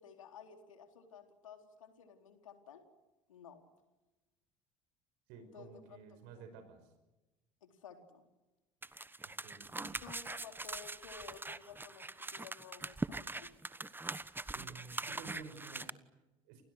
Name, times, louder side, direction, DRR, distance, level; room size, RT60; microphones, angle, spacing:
voice 1, 0.0-2.8 3.3-3.6 5.5-6.0 6.3-6.5 7.6-8.3 9.8-13.5, left 7 dB, 80° left, 6 dB, 4.0 m, -54 dB
voice 2, 5.3-6.9 9.2-9.9 14.5-16.6, right 5 dB, 65° right, 9 dB, 5.5 m, -53 dB
sound 1, 8.8-15.9, right 2 dB, 10° right, 1.3 m, -42 dB
30.0 x 28.5 x 6.5 m, 1.0 s
figure-of-eight pair, 60°, 17 cm